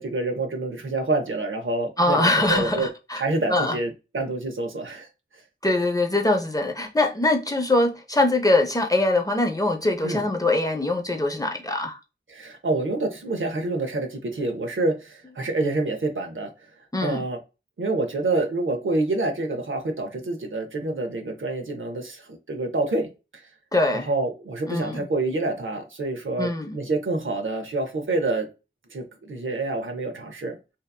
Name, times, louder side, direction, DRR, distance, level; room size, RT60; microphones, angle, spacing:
voice 1, 0.0-2.9 3.2-5.1 10.0-10.2 12.3-16.5 17.0-17.4 17.8-23.1 23.9-28.5 28.9-30.6, right 2 dB, 85° right, 0.6 m, -27 dB
voice 2, 2.0-3.2 3.5-3.8 5.6-12.0 16.9-17.2 23.7-24.1 24.7-25.1 26.4-26.8, left 2 dB, 20° left, 0.5 m, -23 dB
2.7 x 2.3 x 2.2 m
wide cardioid pair, 40°, 20 cm